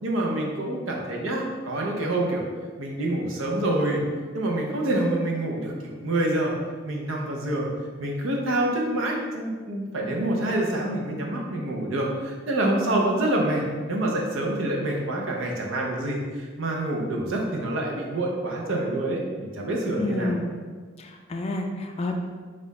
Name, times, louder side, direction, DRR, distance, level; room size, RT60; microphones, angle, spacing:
voice 1, 0.0-2.4 2.8-4.0 4.3-5.7 6.0-6.5 6.8-7.7 8.0-13.6 13.9-20.3, right 1 dB, 80° right, -1 dB, 0.8 m, -26 dB
voice 2, 20.0-20.4 21.0-22.2, left 2 dB, 30° left, 3 dB, 0.3 m, -29 dB
4.2 x 2.5 x 4.1 m, 1.5 s
head